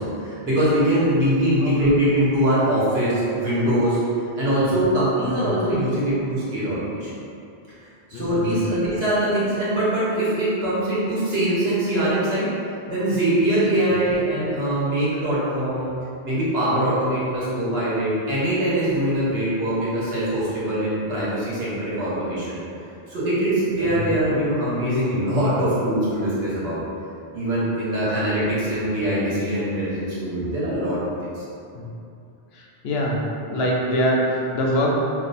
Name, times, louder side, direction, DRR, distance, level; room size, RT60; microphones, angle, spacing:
voice 1, 0.0-4.0 4.4-7.1 8.1-12.5 12.9-15.9 16.2-22.6 23.1-26.8 27.3-31.4, right 1 dB, 75° right, -9 dB, 1.3 m, -22 dB
voice 2, 8.1-8.8 14.1-14.2 23.9-24.0 28.2-28.5 31.7-31.9 32.5-34.9, equal, 80° left, -2 dB, 0.8 m, -25 dB
2.6 x 2.5 x 4.0 m, 2.6 s
omnidirectional pair, 1.0 m